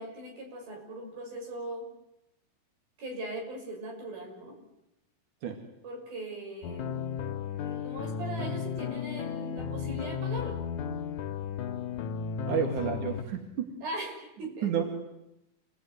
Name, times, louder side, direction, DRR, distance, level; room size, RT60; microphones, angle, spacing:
voice 1, 0.0-1.9 3.0-4.5 5.8-7.3 7.6-10.6 12.5-12.7 13.8-14.7, right 1 dB, 80° right, 2 dB, 8.4 m, -40 dB
sound 1, 6.6-13.2, left 7 dB, 65° left, 2.5 m, -34 dB
voice 2, 12.5-13.7 14.6-14.8, right 8 dB, 60° right, 4 dB, 3.6 m, -30 dB
29.0 x 19.5 x 9.5 m, 0.87 s
omnidirectional pair, 4.2 m